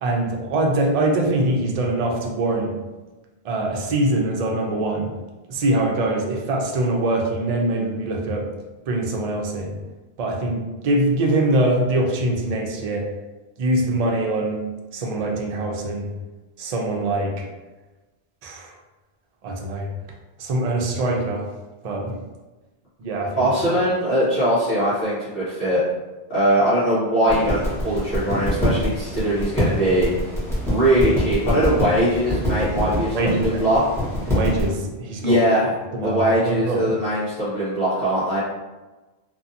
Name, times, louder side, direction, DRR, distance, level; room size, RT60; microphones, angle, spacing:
voice 1, 0.0-2.8 3.4-5.1 5.5-8.5 8.9-9.8 10.2-13.1 13.6-14.6 14.9-16.1 16.6-17.5 18.4-18.7 19.4-19.9 20.4-21.5 21.8-22.2 23.0-23.5 33.1-33.6 34.3-35.4 35.9-36.9, right 1 dB, 50° right, 1 dB, 0.5 m, -23 dB
voice 2, 23.4-25.8 26.3-30.1 30.6-33.8 35.2-35.7 36.0-38.4, right 1 dB, 65° left, -12 dB, 1.2 m, -21 dB
sound 1, 27.3-34.7, equal, 5° left, 1.1 m, -25 dB
2.7 x 2.6 x 2.6 m, 1.2 s
omnidirectional pair, 1.0 m